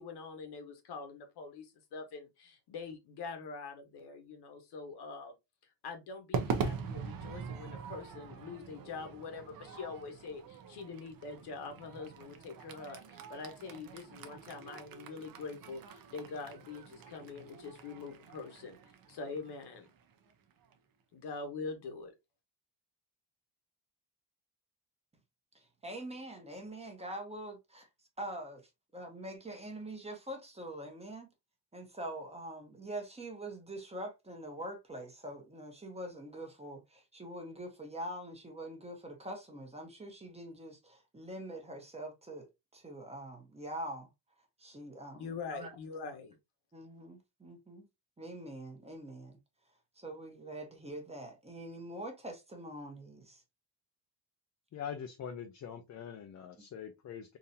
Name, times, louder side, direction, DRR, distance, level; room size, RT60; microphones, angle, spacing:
voice 1, 0.0-5.4 5.8-18.8 19.1-19.9 21.1-22.1 45.1-46.4, left 4 dB, 70° left, 1.2 m, -44 dB
Crowd / Fireworks, 6.3-20.7, right 5 dB, 55° right, 0.8 m, -43 dB
voice 2, 25.8-27.9 28.2-28.6 28.9-31.3 31.7-44.1 44.6-45.7 46.7-47.8 48.2-49.4 50.0-53.4, right 1 dB, 15° right, 1.0 m, -44 dB
voice 3, 54.7-57.4, left 8 dB, 45° left, 0.5 m, -43 dB
3.8 x 2.7 x 2.7 m
cardioid pair, 125°, 41 cm